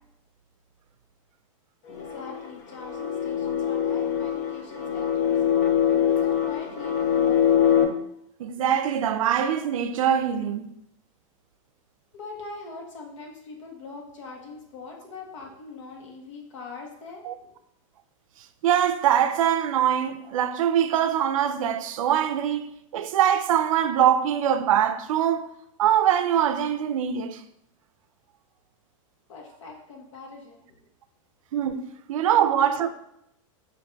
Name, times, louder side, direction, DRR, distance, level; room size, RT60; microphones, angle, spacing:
voice 1, 1.9-7.6 12.1-17.6 29.3-30.7 32.3-32.7, left 3 dB, 65° left, 1.1 m, -42 dB
sound 1, 1.9-7.8, left 9 dB, 25° left, 0.3 m, -23 dB
voice 2, 8.4-10.7 17.2-17.3 18.6-25.5 25.8-27.4 31.5-32.9, right 9 dB, 80° right, 0.4 m, -23 dB
5.2 x 2.6 x 3.3 m
supercardioid pair, 175°, 17 cm